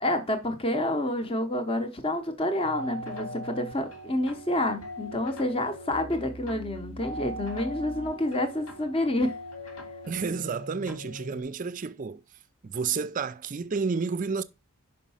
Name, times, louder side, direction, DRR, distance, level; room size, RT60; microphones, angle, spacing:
voice 1, 0.0-9.4, left 1 dB, 25° left, 0.7 m, -28 dB
sound 1, 2.6-11.4, equal, 80° left, 1.9 m, -40 dB
voice 2, 10.1-12.2 12.6-14.4, right 5 dB, 35° right, 0.4 m, -30 dB
5.4 x 5.1 x 5.5 m
head